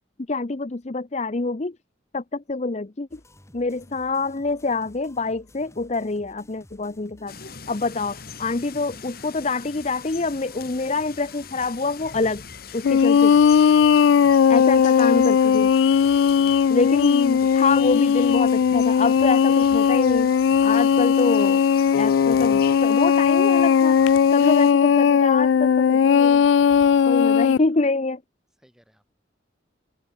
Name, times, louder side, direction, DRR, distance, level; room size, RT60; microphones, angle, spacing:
voice 1, 0.3-1.8 2.1-3.2 3.5-7.4 7.7-12.4 12.7-13.3 14.5-15.7 16.7-20.3 20.6-21.6 22.0-24.0 24.3-26.4 27.1-28.2, left 3 dB, 35° left, 0.7 m, -26 dB
sound 1, 3.1-21.0, left 1 dB, 15° left, 3.7 m, -52 dB
sound 2, 7.3-24.7, left 7 dB, 50° left, 3.2 m, -42 dB
sound 3, 12.8-27.6, left 7 dB, 75° left, 0.3 m, -18 dB
voice 2, 14.3-14.8 16.4-16.5 27.3-27.5 28.6-29.1, equal, 5° right, 2.8 m, -56 dB
open air
head